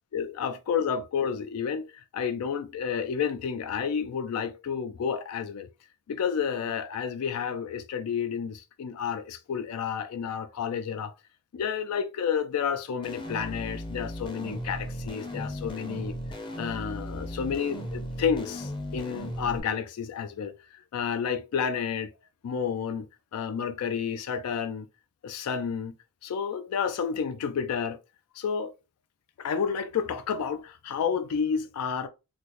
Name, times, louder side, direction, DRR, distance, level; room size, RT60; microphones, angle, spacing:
voice 1, 0.1-5.7 6.1-11.1 11.5-16.2 16.6-22.1 22.4-23.1 23.3-24.9 25.2-25.9 26.2-28.0 28.3-28.7 29.4-32.1, left 7 dB, 85° left, 0.3 m, -30 dB
sound 1, 13.0-19.6, equal, 20° left, 0.5 m, -36 dB
4.0 x 2.0 x 3.0 m
head